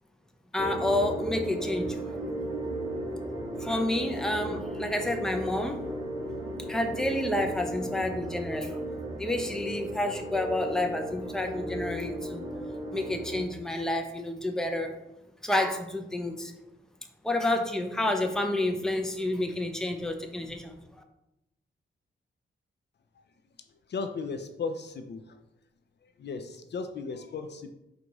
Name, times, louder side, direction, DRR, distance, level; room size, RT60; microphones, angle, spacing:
voice 1, 0.5-2.0 3.6-6.0 6.7-8.8 9.2-12.4 12.9-14.9 15.4-16.5 17.2-20.8, left 1 dB, 5° left, 4 dB, 0.5 m, -29 dB
sound 1, 0.6-13.5, right 1 dB, 20° right, 0.8 m, -35 dB
voice 2, 23.9-25.4 26.2-27.7, left 4 dB, 55° left, 7 dB, 0.4 m, -35 dB
4.6 x 2.4 x 3.9 m, 0.89 s
cardioid pair, 75°, 21 cm